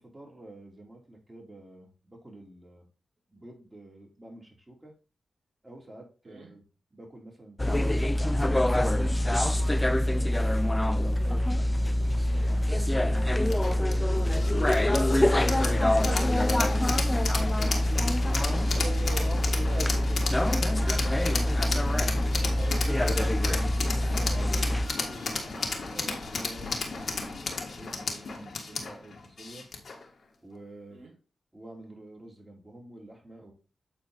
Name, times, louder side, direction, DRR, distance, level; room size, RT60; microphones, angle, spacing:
voice 1, 0.0-2.9 3.3-4.9 5.6-6.6 6.9-7.9 9.9-12.1 12.7-14.4 22.3-23.0 24.1-29.7 30.4-31.0 31.5-33.5, right 1 dB, 25° right, -1 dB, 3.1 m, -48 dB
sound 1, 7.6-24.9, left 1 dB, 15° left, 0.6 m, -25 dB
sound 2, 13.5-30.0, left 3 dB, 65° left, 1.8 m, -34 dB
voice 2, 18.4-21.6 22.6-23.6 30.9-31.1, right 3 dB, 85° right, 0 dB, 1.6 m, -43 dB
sound 3, 20.1-26.3, right 1 dB, 40° right, 1.9 m, -48 dB
8.5 x 4.4 x 3.9 m, 0.35 s
cardioid pair, 65°, 0 cm